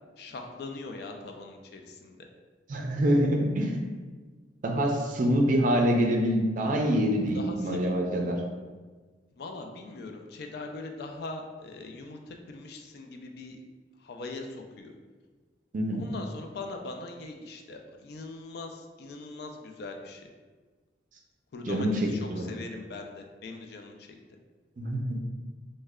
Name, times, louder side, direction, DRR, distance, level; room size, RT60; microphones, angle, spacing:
voice 1, 0.2-2.3 7.3-7.9 9.4-13.6 14.0-14.9 15.9-20.3 21.5-24.1, left 3 dB, 60° left, 3 dB, 0.4 m, -41 dB
voice 2, 2.7-3.8 4.6-8.4 15.7-16.1 21.7-22.5 24.8-25.2, equal, 45° right, 1 dB, 0.4 m, -25 dB
3.2 x 2.1 x 3.5 m, 1.4 s
head